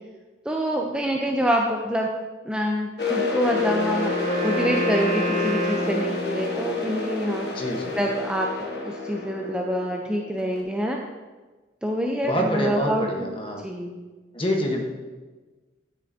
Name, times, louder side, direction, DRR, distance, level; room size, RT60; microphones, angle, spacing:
voice 1, 0.5-2.1 2.4-7.5 8.0-11.0 11.8-13.3 13.6-14.0, equal, 5° right, 0 dB, 0.4 m, -26 dB
sound 1, 3.0-10.6, left 3 dB, 60° left, 1.1 m, -29 dB
Wind instrument woodwind instrument, 3.4-6.7, equal, 45° right, 2.2 m, -29 dB
voice 2, 7.5-8.0 12.2-13.6 14.3-14.8, equal, 30° left, 2 dB, 1.0 m, -26 dB
10.0 x 6.6 x 2.6 m, 1.3 s
head